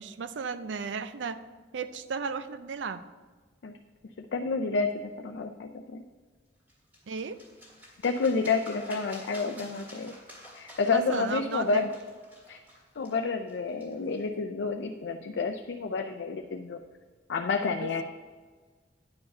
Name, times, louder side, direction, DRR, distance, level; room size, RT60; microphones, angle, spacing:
voice 1, 0.0-1.4 1.7-3.0 7.1-7.4 10.9-11.8 17.7-18.0, right 5 dB, 80° right, 12 dB, 0.5 m, -35 dB
voice 2, 4.3-6.0 8.0-10.1 10.5-11.9 12.5-12.6 13.0-16.8 17.3-18.0, left 4 dB, 75° left, 5 dB, 0.4 m, -29 dB
sound 1, 6.7-14.2, equal, 10° right, 1.8 m, -50 dB
9.5 x 4.7 x 5.4 m, 1.4 s
head